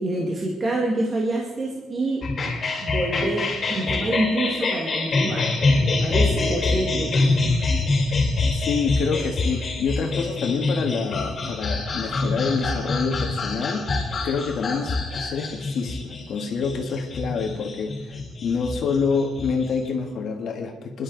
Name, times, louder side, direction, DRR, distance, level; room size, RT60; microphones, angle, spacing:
voice 1, 0.0-2.3 2.8-7.4, right 1 dB, 30° right, -1 dB, 1.9 m, -27 dB
sound 1, 2.2-19.9, left 3 dB, 35° left, 5.1 m, -25 dB
voice 2, 8.4-13.9 14.2-21.0, left 5 dB, 55° left, 3 dB, 1.7 m, -27 dB
24.5 x 11.5 x 4.0 m, 1.2 s
cardioid pair, 150°, 0 cm